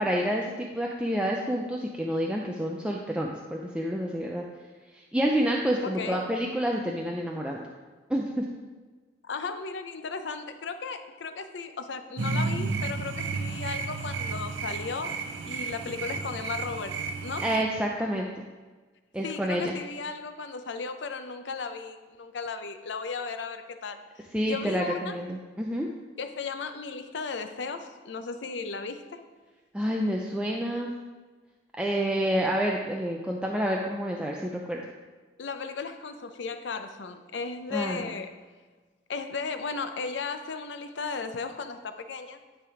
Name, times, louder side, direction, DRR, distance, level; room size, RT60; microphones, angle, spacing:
voice 1, 0.0-4.4 5.1-7.7 8.1-8.5 17.4-18.4 19.1-19.7 24.3-25.9 29.7-30.9 31.8-34.8 37.7-38.1, equal, 5° right, -1 dB, 0.4 m, -28 dB
voice 2, 5.8-6.2 9.2-15.1 15.4-17.4 19.2-24.0 24.4-25.2 26.2-29.2 35.4-38.3 39.1-42.4, left 4 dB, 75° left, 9 dB, 0.5 m, -35 dB
sound 1, 12.2-17.6, right 4 dB, 90° right, 0.6 m, -32 dB
10.5 x 3.4 x 4.8 m, 1.3 s
head